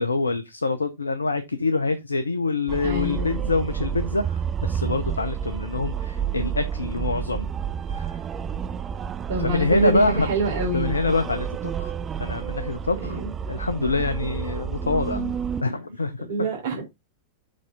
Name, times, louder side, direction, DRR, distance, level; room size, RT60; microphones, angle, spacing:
voice 1, 0.0-7.5 7.9-8.1 9.4-10.3 10.7-11.9 12.2-13.2 13.5-15.2 15.6-16.5, left 3 dB, 80° left, 0.8 m, -25 dB
sound 1, 2.7-15.6, right 7 dB, 25° right, 0.5 m, -30 dB
voice 2, 2.8-3.5 9.3-11.0 13.0-13.3 15.1-15.3 16.3-16.8, right 3 dB, 55° right, 3.6 m, -27 dB
7.5 x 5.6 x 3.6 m
figure-of-eight pair, 90°, 0 cm